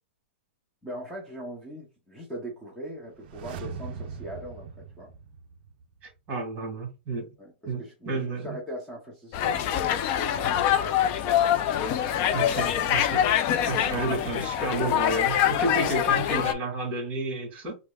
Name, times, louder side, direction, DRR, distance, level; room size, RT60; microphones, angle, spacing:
voice 1, 0.8-5.1 7.4-11.9, equal, 5° left, 0.8 m, -40 dB
sound 1, 3.1-6.0 6.3-6.4, right 5 dB, 55° right, 0.4 m, -40 dB
voice 2, 6.0-7.3 7.7-8.6 12.3-13.3 13.6-17.8, right 2 dB, 25° right, 1.8 m, -31 dB
sound 2, 9.3-16.5, left 10 dB, 35° left, 0.4 m, -25 dB
4.6 x 2.1 x 2.3 m
hypercardioid pair, 145°, 6 cm